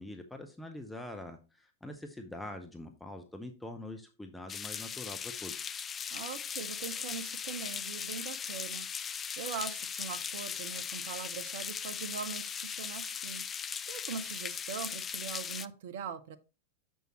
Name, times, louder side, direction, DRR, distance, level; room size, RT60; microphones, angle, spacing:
voice 1, 0.0-5.7, left 1 dB, 5° left, 0.8 m, -44 dB
sound 1, 4.5-15.7, left 7 dB, 20° left, 0.3 m, -38 dB
voice 2, 6.1-8.9 9.4-13.4 13.9-16.4, right 7 dB, 55° right, 0.7 m, -41 dB
6.6 x 6.3 x 3.0 m
figure-of-eight pair, 90°, 0 cm